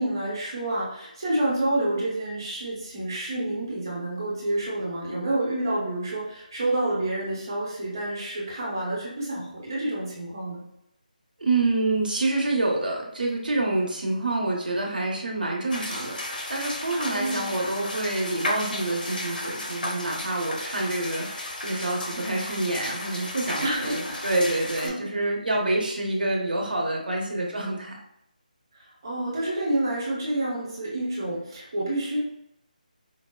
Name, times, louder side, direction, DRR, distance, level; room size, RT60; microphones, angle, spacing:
voice 1, 0.0-10.6 17.1-17.6 23.6-24.2 24.8-25.0 29.0-32.2, right 1 dB, 25° right, -6 dB, 1.0 m, -28 dB
voice 2, 11.4-28.0, right 2 dB, 85° right, -1 dB, 1.0 m, -27 dB
sound 1, 15.7-24.9, left 1 dB, 85° left, 0.8 m, -34 dB
4.6 x 2.1 x 2.3 m, 0.81 s
figure-of-eight pair, 180°, 5 cm